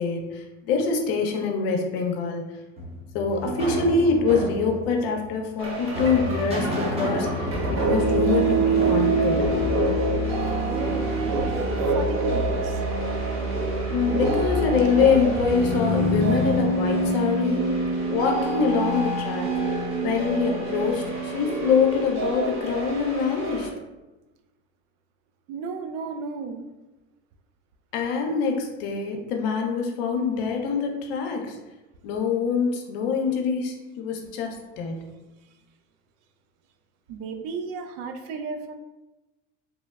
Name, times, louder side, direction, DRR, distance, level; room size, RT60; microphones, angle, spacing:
voice 1, 0.0-2.5 3.1-9.5 13.9-17.6 18.0-19.5 20.0-23.7 27.9-31.6 32.0-35.1, left 5 dB, 80° left, 3 dB, 0.6 m, -25 dB
sound 1, 2.8-10.9, equal, 20° right, 0.7 m, -32 dB
sound 2, 5.6-23.7, right 2 dB, 45° right, 0.9 m, -25 dB
voice 2, 10.7-12.8 25.5-26.6 37.1-38.7, right 5 dB, 60° right, 7 dB, 0.4 m, -34 dB
3.0 x 2.0 x 2.3 m, 1.1 s
supercardioid pair, 100°, 29 cm